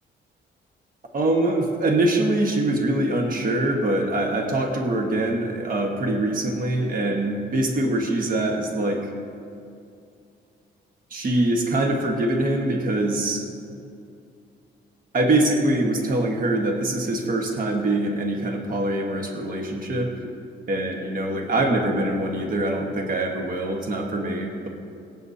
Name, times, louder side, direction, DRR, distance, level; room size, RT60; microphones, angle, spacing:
voice 1, 1.1-9.1 11.1-13.4 15.1-20.3 20.7-24.7, right 1 dB, 45° right, 1 dB, 1.4 m, -23 dB
24.5 x 8.7 x 2.8 m, 2.5 s
cardioid pair, 135°, 20 cm